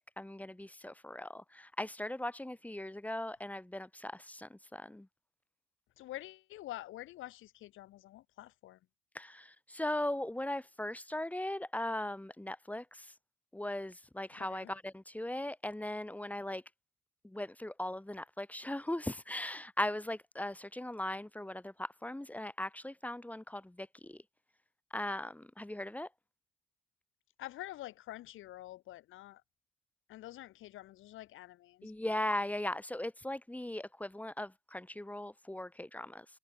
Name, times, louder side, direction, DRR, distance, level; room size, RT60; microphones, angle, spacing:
voice 1, 0.0-5.1 9.2-13.1 13.5-16.6 17.2-24.2 24.9-26.1 31.8-36.3, left 1 dB, 5° left, 3.4 m, -39 dB
voice 2, 6.0-8.8 14.3-14.7 27.4-29.4 30.1-32.2, left 15 dB, 85° left, 3.0 m, -47 dB
cardioid pair, 90°, 20 cm